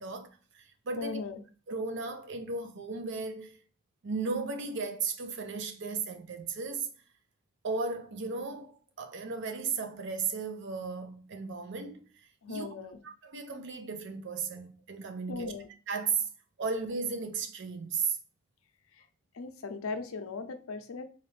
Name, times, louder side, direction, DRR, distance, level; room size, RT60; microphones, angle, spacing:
voice 1, 0.0-1.2 1.7-3.6 4.0-6.9 7.6-12.7 13.0-15.5 15.9-16.3 16.6-18.2, right 4 dB, 60° right, 0.5 m, -35 dB
voice 2, 1.0-1.4 12.4-13.0 15.3-15.7 18.9-19.1 19.3-21.0, left 4 dB, 90° left, 0.5 m, -38 dB
4.1 x 2.4 x 3.2 m
head